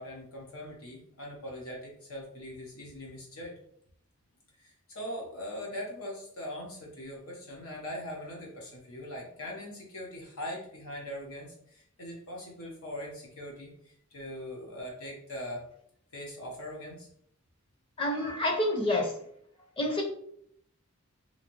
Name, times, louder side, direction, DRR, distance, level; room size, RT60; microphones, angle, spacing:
voice 1, 0.0-3.5 4.6-15.7 16.1-17.1, left 1 dB, 85° left, -2 dB, 1.0 m, -41 dB
voice 2, 18.0-19.1 19.8-20.0, left 1 dB, 25° left, 2 dB, 0.7 m, -28 dB
3.9 x 2.8 x 3.0 m, 0.67 s
head